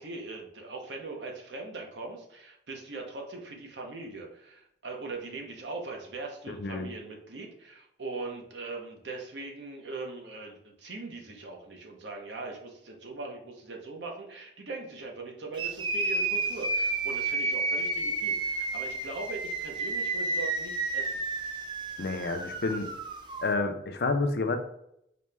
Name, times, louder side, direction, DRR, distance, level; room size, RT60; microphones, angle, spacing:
voice 1, 0.0-21.1, right 3 dB, 75° right, 1 dB, 0.8 m, -40 dB
voice 2, 6.5-6.9 22.0-22.9 23.4-24.6, left 3 dB, 60° left, 7 dB, 0.4 m, -29 dB
sound 1, 15.5-23.5, right 3 dB, 25° right, 0.3 m, -31 dB
4.2 x 2.1 x 3.3 m, 0.75 s
head